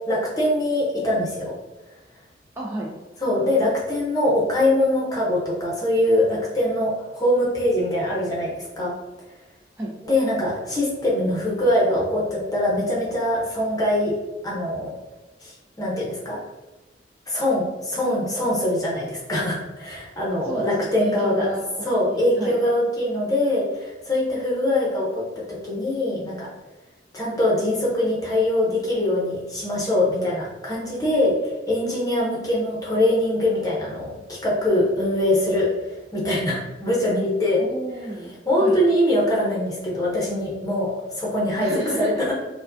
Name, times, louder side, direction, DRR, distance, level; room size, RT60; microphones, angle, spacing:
voice 1, 0.1-1.5 3.2-8.9 10.0-14.1 14.4-14.9 15.4-16.4 17.3-21.5 21.8-25.2 25.5-26.5 27.1-37.6 38.5-41.7 42.0-42.1, left 1 dB, 20° left, -5 dB, 0.8 m, -23 dB
voice 2, 2.5-2.9 9.8-9.9 20.4-21.6 22.1-22.6 37.6-38.3 38.6-38.8 41.6-42.3, right 1 dB, 15° right, -5 dB, 0.4 m, -31 dB
4.6 x 2.2 x 2.6 m, 1.1 s
head